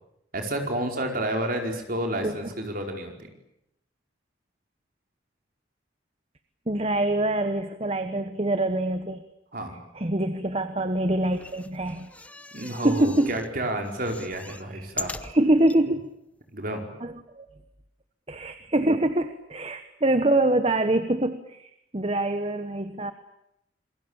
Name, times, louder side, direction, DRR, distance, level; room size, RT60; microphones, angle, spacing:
voice 1, 0.3-3.3 9.5-9.8 12.5-15.1 16.5-16.9, right 1 dB, 45° right, 3 dB, 4.9 m, -30 dB
voice 2, 6.7-9.2 9.9-12.1 12.8-13.3 14.7-14.9 15.2-16.0 17.0-17.4 18.3-23.1, right 1 dB, 30° right, 10 dB, 1.2 m, -25 dB
sound 1, 11.2-13.5 13.8-15.8 16.4-16.5 16.7-16.8, left 2 dB, 5° left, 0.9 m, -40 dB
27.5 x 21.5 x 8.9 m, 0.80 s
head